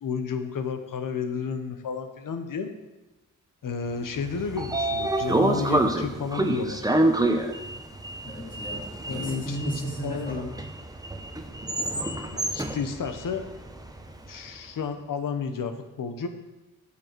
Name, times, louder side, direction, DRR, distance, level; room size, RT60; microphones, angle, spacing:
voice 1, 0.0-2.7 3.6-6.8 8.7-9.6 10.0-10.5 12.3-13.5 14.3-16.3, left 6 dB, 80° left, 8 dB, 1.1 m, -32 dB
Sliding door, 4.1-14.3, right 1 dB, 10° right, 0.9 m, -28 dB
voice 2, 8.2-10.5, right 1 dB, 25° left, -3 dB, 2.6 m, -34 dB
12.0 x 7.0 x 4.6 m, 1.0 s
wide cardioid pair, 90°, 32 cm